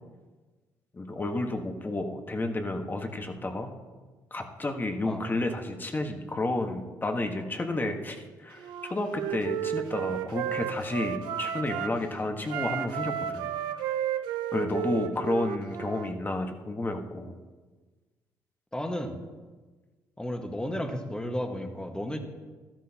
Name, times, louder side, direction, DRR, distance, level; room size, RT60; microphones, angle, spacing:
voice 1, 0.9-3.7 4.3-13.5 14.5-17.3, left 2 dB, 25° left, 4 dB, 1.5 m, -31 dB
Wind instrument woodwind instrument, 8.6-12.0 12.4-16.1, right 10 dB, 85° right, 0.6 m, -33 dB
voice 2, 18.7-19.2 20.2-22.2, left 1 dB, 10° left, 4 dB, 1.6 m, -33 dB
13.0 x 12.0 x 2.9 m, 1.3 s
supercardioid pair, 65°, 8 cm